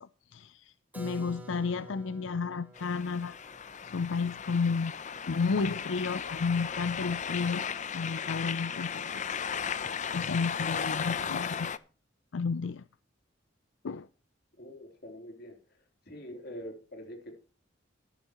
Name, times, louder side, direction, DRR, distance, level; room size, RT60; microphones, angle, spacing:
voice 1, 0.0-3.4 3.8-4.9 5.3-7.6 7.9-9.5 9.8-11.7 12.3-12.8 13.8-14.1, left 4 dB, 85° left, 0.5 m, -32 dB
Keyboard (musical), 0.9-6.6, right 1 dB, 10° right, 3.0 m, -51 dB
sound 1, 2.8-11.8, left 7 dB, 40° left, 0.7 m, -36 dB
voice 2, 14.6-17.4, equal, 55° left, 3.5 m, -45 dB
13.0 x 12.0 x 3.0 m
head